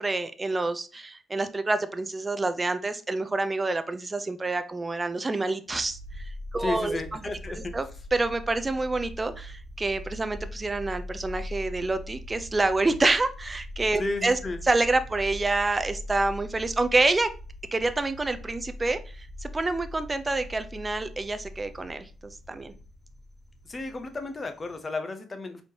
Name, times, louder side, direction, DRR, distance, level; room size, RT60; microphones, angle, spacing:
voice 1, 0.0-7.0 7.6-7.8 8.1-14.4 14.7-17.3 17.7-22.7, right 3 dB, 20° right, 11 dB, 0.5 m, -27 dB
sound 1, 5.6-24.9, left 1 dB, ahead, 1.9 m, -42 dB
voice 2, 6.6-7.7 14.0-14.6 23.6-25.6, left 3 dB, 30° left, 7 dB, 0.8 m, -33 dB
4.2 x 3.1 x 2.8 m, 0.35 s
cardioid pair, 90°, 0 cm